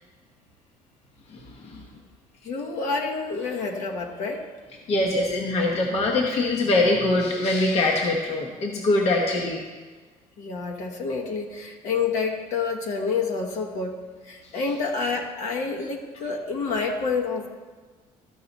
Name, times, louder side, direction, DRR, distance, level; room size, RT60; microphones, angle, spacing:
voice 1, 1.3-1.8 4.9-9.6, left 2 dB, 50° left, 0 dB, 1.0 m, -23 dB
voice 2, 2.4-4.5 10.4-17.5, left 4 dB, 70° left, 1 dB, 1.2 m, -28 dB
13.0 x 4.8 x 4.0 m, 1.4 s
cardioid pair, 130°, 13 cm